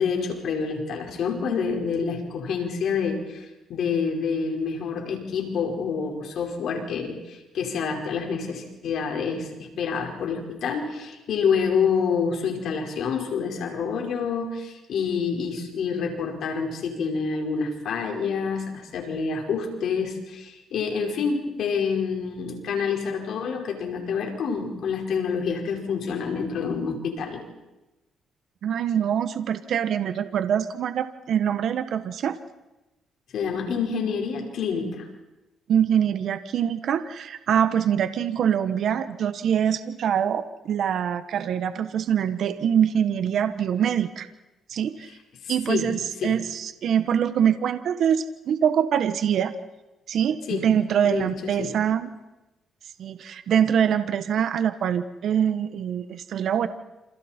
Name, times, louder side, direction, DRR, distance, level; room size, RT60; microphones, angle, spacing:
voice 1, 0.0-27.4 33.3-35.0 45.4-45.9 46.2-46.3 50.5-50.7 51.0-51.7, left 6 dB, 70° left, 1 dB, 4.9 m, -27 dB
voice 2, 28.6-32.4 35.7-44.3 44.7-45.1 45.5-49.5 50.1-52.1 53.0-56.7, right 8 dB, 65° right, 11 dB, 1.3 m, -24 dB
28.0 x 27.5 x 4.5 m, 1.0 s
cardioid pair, 90°, 0 cm